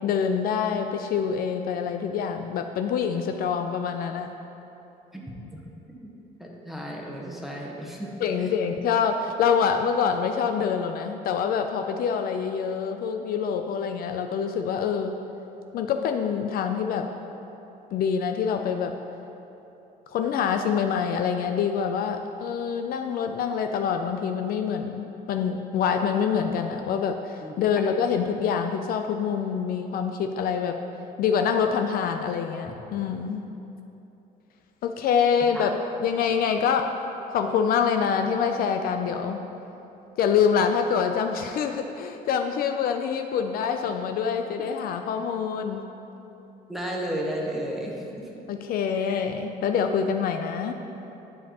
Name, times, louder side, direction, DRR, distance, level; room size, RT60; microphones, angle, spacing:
voice 1, 0.0-4.3 8.2-15.2 15.7-17.1 17.9-18.9 20.1-30.8 31.2-33.4 34.8-35.7 36.0-36.9 37.3-39.4 40.2-45.8 48.5-50.7, left 7 dB, 60° left, 6 dB, 0.4 m, -26 dB
voice 2, 6.4-8.1 8.4-8.5 27.4-27.6 35.5-35.7 46.7-48.3, right 1 dB, ahead, -2 dB, 1.0 m, -33 dB
9.7 x 5.2 x 2.9 m, 3.0 s
cardioid pair, 110°, 17 cm